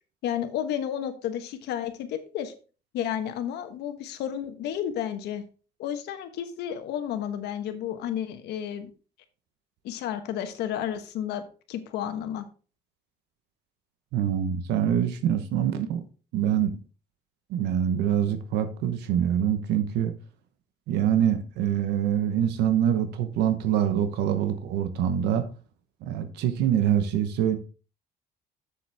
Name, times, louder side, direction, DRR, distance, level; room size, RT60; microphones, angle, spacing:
voice 1, 0.2-2.5 2.9-5.4 5.8-8.9 9.8-11.4 11.7-12.5, left 10 dB, 80° left, 1.2 m, -31 dB
voice 2, 14.1-16.0 16.3-16.8 17.5-20.1 20.9-25.5 26.0-27.6, right 9 dB, 85° right, 1.0 m, -25 dB
7.6 x 7.0 x 3.4 m
cardioid pair, 110°, 17 cm